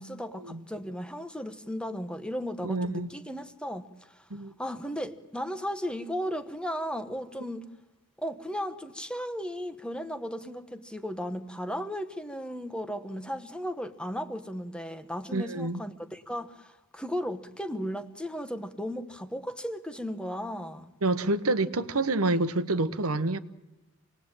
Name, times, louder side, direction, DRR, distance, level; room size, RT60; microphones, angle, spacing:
voice 1, 0.0-4.3 4.6-7.6 8.2-20.9, equal, 5° left, 1.1 m, -35 dB
voice 2, 2.6-3.1 4.3-4.5 15.3-15.8 21.0-23.4, right 2 dB, 85° right, 1.2 m, -27 dB
27.0 x 19.5 x 9.0 m
head